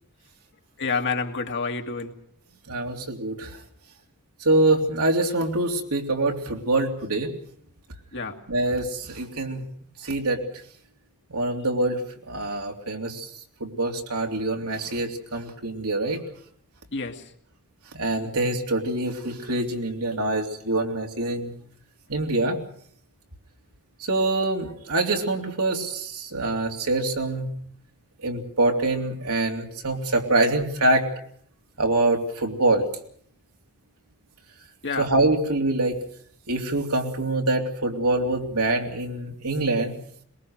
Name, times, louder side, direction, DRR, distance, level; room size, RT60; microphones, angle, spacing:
voice 1, 0.8-2.1 8.1-8.4 16.9-17.3 34.8-35.1, left 4 dB, 55° left, 4 dB, 2.1 m, -28 dB
voice 2, 2.7-3.6 4.4-7.3 8.5-9.6 10.0-10.4 11.3-12.0 12.3-13.3 13.6-16.2 17.9-21.5 22.1-22.6 24.0-27.5 28.2-31.1 31.8-32.9 35.0-36.0 36.5-39.9, right 2 dB, 80° right, 2 dB, 3.3 m, -25 dB
22.5 x 21.5 x 6.5 m, 0.64 s
head